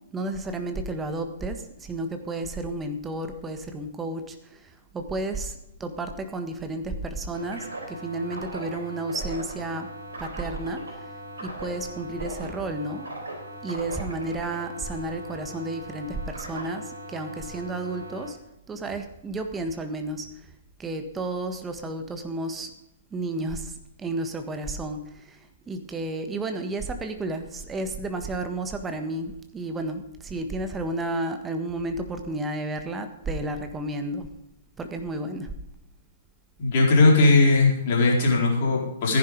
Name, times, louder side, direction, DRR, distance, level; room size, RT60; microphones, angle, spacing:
voice 1, 0.1-9.9 10.2-11.1 11.4-13.1 13.6-18.4 18.7-20.5 20.8-22.7 23.1-34.3 34.8-35.5, right 2 dB, 15° right, 6 dB, 1.6 m, -32 dB
sound 1, 7.3-18.3, right 1 dB, 70° right, 3.9 m, -39 dB
voice 2, 36.6-39.2, left 3 dB, 45° left, -1 dB, 4.4 m, -19 dB
15.0 x 10.5 x 5.2 m, 0.86 s
figure-of-eight pair, 115°, 0 cm